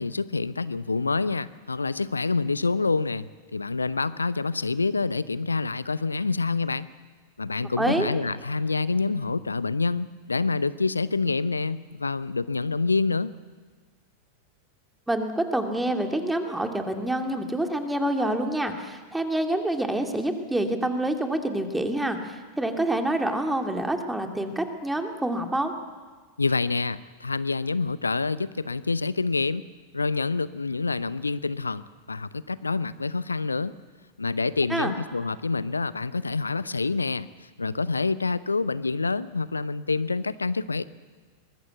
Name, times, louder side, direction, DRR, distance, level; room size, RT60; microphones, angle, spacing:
voice 1, 0.0-6.9 7.4-13.3 26.4-29.6 29.9-33.7 34.2-37.3 37.6-40.8, left 4 dB, 80° left, 18 dB, 0.6 m, -27 dB
voice 2, 7.8-8.1 15.1-25.7 34.7-34.9, right 1 dB, 5° right, 5 dB, 2.5 m, -27 dB
23.5 x 21.0 x 8.2 m, 1.4 s
figure-of-eight pair, 90°, 0 cm